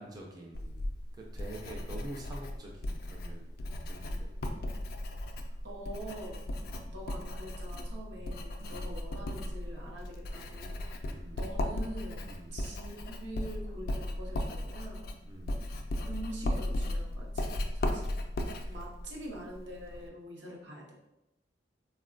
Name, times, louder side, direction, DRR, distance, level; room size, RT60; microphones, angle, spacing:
voice 1, 0.0-5.6 6.6-7.0 8.1-8.3 8.6-8.9 11.0-11.5 12.2-12.7 15.2-15.8 18.6-18.7, right 1 dB, 25° right, -1 dB, 0.4 m, -48 dB
Writing, 0.5-20.1, left 1 dB, 60° left, 0.3 m, -36 dB
voice 2, 5.6-6.5 6.9-15.2 15.6-15.8 16.1-18.2 18.7-20.9, right 1 dB, 80° right, -2 dB, 0.7 m, -45 dB
3.7 x 2.1 x 2.4 m, 0.89 s
head